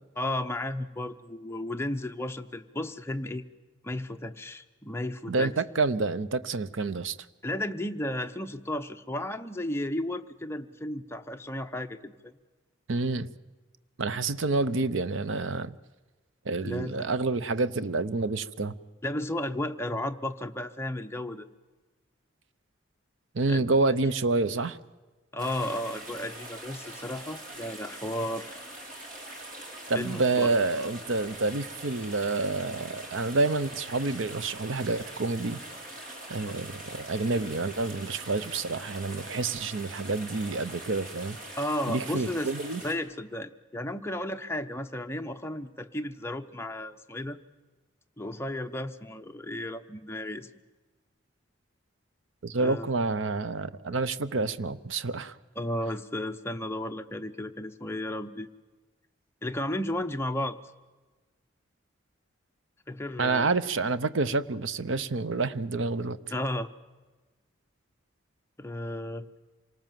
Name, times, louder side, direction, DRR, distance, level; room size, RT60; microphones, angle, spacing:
voice 1, 0.2-3.4 3.8-5.5 7.4-12.3 16.6-17.1 19.0-21.5 23.5-23.6 25.3-28.7 29.9-30.5 41.6-42.5 42.8-47.4 48.2-50.5 52.5-52.9 55.6-58.5 59.4-60.6 62.9-63.5 66.3-66.7 68.6-69.3, left 1 dB, 10° left, 0.8 m, -33 dB
voice 2, 5.3-7.2 12.9-13.3 14.0-15.7 16.4-18.7 23.3-24.8 29.9-35.6 36.3-41.4 41.9-42.8 52.4-55.4 63.2-66.2, right 3 dB, 70° right, 0.8 m, -28 dB
sound 1, 25.4-42.9, right 1 dB, 40° right, 4.1 m, -43 dB
27.0 x 19.0 x 7.5 m
head